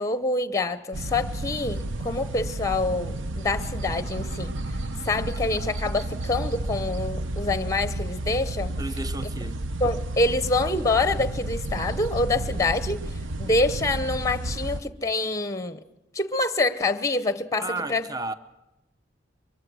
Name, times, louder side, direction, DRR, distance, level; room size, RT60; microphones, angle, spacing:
voice 1, 0.0-4.5 5.0-8.7 9.8-13.1 13.4-15.8 16.1-18.1, left 2 dB, 15° left, 0.8 m, -26 dB
sound 1, 0.9-14.8, right 1 dB, 80° right, 0.8 m, -31 dB
voice 2, 8.8-9.6 17.6-18.3, right 2 dB, 20° right, 0.8 m, -33 dB
24.0 x 23.5 x 6.3 m
head